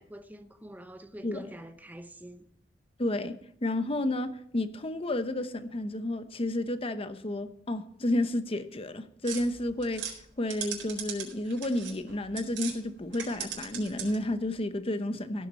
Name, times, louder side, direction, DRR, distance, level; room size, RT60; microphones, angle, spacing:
voice 1, 0.0-2.5, right 1 dB, 10° right, 0.7 m, -46 dB
voice 2, 3.0-3.4 3.6-10.1 10.4-15.5, left 1 dB, 30° left, 0.9 m, -31 dB
sound 1, 9.2-12.8 13.1-14.3, right 8 dB, 80° right, 4.2 m, -39 dB
16.5 x 7.2 x 5.6 m
head